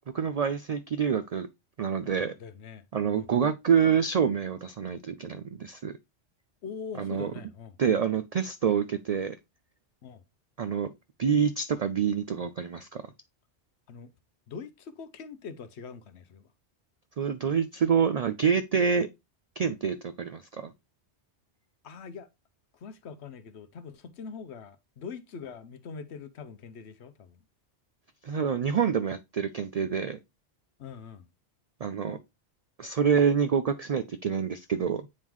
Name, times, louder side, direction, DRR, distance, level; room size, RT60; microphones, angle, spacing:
voice 1, 0.1-1.5 1.8-2.3 2.9-5.9 7.0-7.3 7.8-9.4 10.6-10.9 11.2-13.0 17.2-19.1 19.6-20.7 28.2-30.2 31.8-32.2 32.8-35.1, right 7 dB, 80° right, 0.3 m, -27 dB
voice 2, 2.4-3.3 6.6-7.8 10.0-10.2 13.9-14.1 14.5-16.4 21.8-22.3 22.7-27.4 30.8-31.3, left 6 dB, 70° left, 1.0 m, -43 dB
8.5 x 3.7 x 3.0 m
omnidirectional pair, 1.2 m